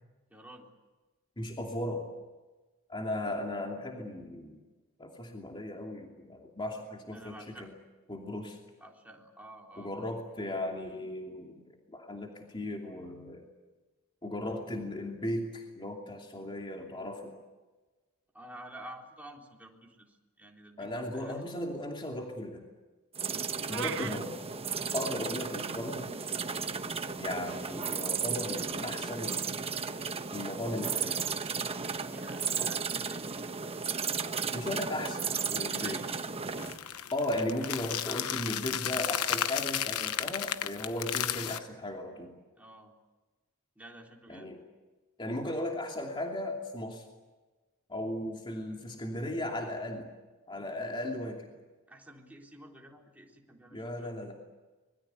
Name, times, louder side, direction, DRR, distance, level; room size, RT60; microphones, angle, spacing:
voice 1, 0.3-0.7 7.1-7.7 8.8-9.9 18.3-21.4 23.9-24.1 32.1-33.3 35.7-36.2 42.6-43.0 43.8-44.5 51.9-54.3, right 1 dB, 5° right, -1 dB, 3.7 m, -50 dB
voice 2, 1.4-2.0 2.9-4.6 5.0-7.7 8.1-8.6 9.8-11.6 11.9-13.4 14.2-17.3 20.8-22.6 23.7-24.3 24.9-26.2 27.2-29.4 30.3-31.2 34.5-35.3 35.5-36.0 37.1-42.3 44.3-44.6 45.2-47.0 47.9-50.1 50.5-51.5 53.7-54.3, left 1 dB, 25° left, 1 dB, 2.8 m, -36 dB
sound 1, 23.1-36.8, right 5 dB, 25° right, 1.1 m, -34 dB
sound 2, 23.7-24.2, right 10 dB, 60° right, 0.8 m, -36 dB
sound 3, 36.6-41.6, left 10 dB, 85° left, 1.0 m, -33 dB
25.5 x 21.5 x 8.3 m, 1.2 s
head